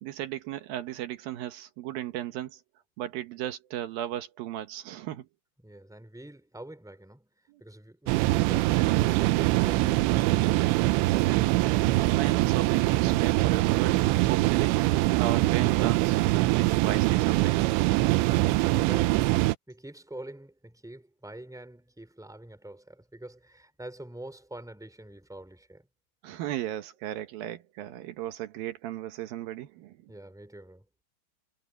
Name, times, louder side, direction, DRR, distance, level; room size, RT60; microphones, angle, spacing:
voice 1, 0.0-2.6 3.0-5.3 7.5-7.6 11.0-14.8 15.2-17.6 26.2-30.1, right 12 dB, 70° right, 2.4 m, -36 dB
voice 2, 5.6-7.3 7.6-10.6 19.7-25.9 30.1-30.8, right 1 dB, ahead, 2.4 m, -45 dB
sound 1, 8.1-19.6, right 19 dB, 85° right, 3.0 m, -23 dB
omnidirectional pair, 5.1 m